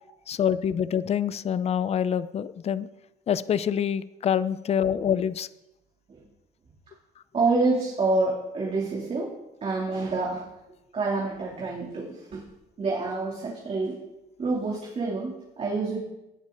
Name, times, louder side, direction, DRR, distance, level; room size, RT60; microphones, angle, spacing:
voice 1, 0.3-2.9 3.3-5.5, left 8 dB, 40° left, 15 dB, 0.6 m, -26 dB
voice 2, 7.3-9.3 9.6-10.4 10.9-12.4 12.8-14.0 14.4-16.0, right 3 dB, 35° right, -3 dB, 3.0 m, -27 dB
18.0 x 10.5 x 4.0 m, 0.94 s
cardioid pair, 110°, 17 cm